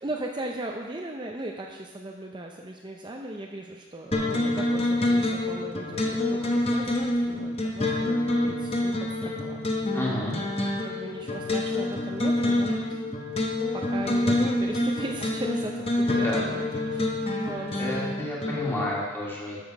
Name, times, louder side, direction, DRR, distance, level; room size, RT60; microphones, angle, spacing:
voice 1, 0.0-6.9 7.3-9.9 10.8-13.0 13.7-16.6 16.9-17.8, right 1 dB, 25° right, 1 dB, 0.5 m, -37 dB
sound 1, 4.1-18.9, left 1 dB, 30° left, 1.0 m, -27 dB
voice 2, 9.9-10.4 16.1-16.4 17.8-19.6, left 1 dB, 10° left, -5 dB, 2.0 m, -30 dB
13.0 x 6.2 x 5.3 m, 1.4 s
head